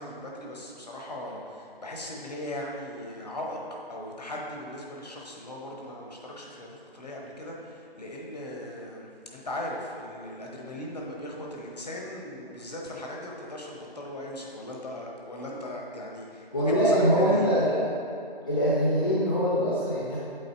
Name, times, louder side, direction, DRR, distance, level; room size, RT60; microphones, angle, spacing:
voice 1, 0.0-17.5, left 1 dB, 40° left, -2 dB, 1.1 m, -38 dB
voice 2, 16.5-17.8 18.5-20.2, equal, 20° left, -9 dB, 0.7 m, -23 dB
7.7 x 4.2 x 4.2 m, 2.7 s
figure-of-eight pair, 160°, 30 cm